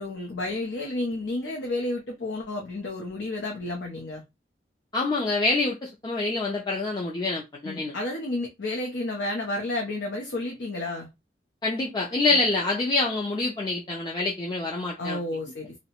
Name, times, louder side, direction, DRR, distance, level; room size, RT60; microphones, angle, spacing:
voice 1, 0.0-4.2 7.6-11.1 15.0-15.8, left 2 dB, 80° left, 0.6 m, -31 dB
voice 2, 4.9-8.0 11.6-15.2, left 3 dB, 25° left, 0.4 m, -26 dB
2.7 x 2.1 x 2.8 m
head